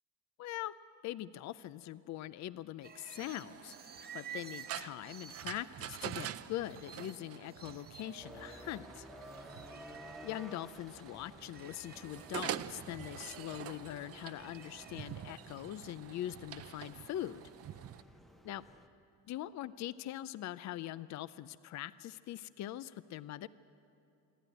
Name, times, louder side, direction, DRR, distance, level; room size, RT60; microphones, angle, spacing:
voice 1, 0.4-0.7 1.0-9.1 10.2-17.4 18.4-18.6 19.3-23.5, left 13 dB, 50° left, 17 dB, 0.5 m, -42 dB
sound 1, 2.8-10.6 11.1-15.4, right 7 dB, 25° right, 1.1 m, -53 dB
sound 2, 3.2-18.0, right 11 dB, 45° right, 0.5 m, -46 dB
sound 3, 8.2-18.9, equal, ahead, 0.8 m, -55 dB
26.5 x 11.0 x 9.1 m, 2.7 s
cardioid pair, 140°, 36 cm